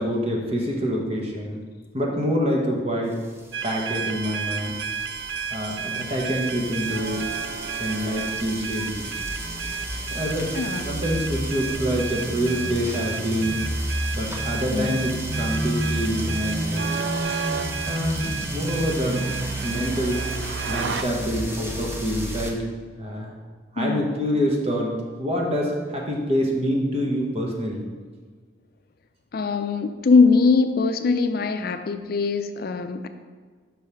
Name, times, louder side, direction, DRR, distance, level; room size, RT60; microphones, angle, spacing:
voice 1, 0.0-1.6 1.9-3.2 3.6-4.7 5.5-7.2 7.8-9.1 10.1-10.5 10.8-13.6 14.1-17.0 17.9-19.3 19.6-20.2 20.7-22.6 23.0-23.3 23.7-27.8, equal, 35° right, -1 dB, 1.2 m, -26 dB
sound 1, 3.5-21.0, right 6 dB, 75° right, 0.5 m, -33 dB
sound 2, 3.9-22.5, right 1 dB, 15° right, 0.8 m, -31 dB
voice 2, 10.5-11.0 14.7-15.1 23.8-24.1 29.3-33.1, left 4 dB, 55° left, 8 dB, 0.4 m, -21 dB
5.5 x 5.1 x 5.8 m, 1.5 s
head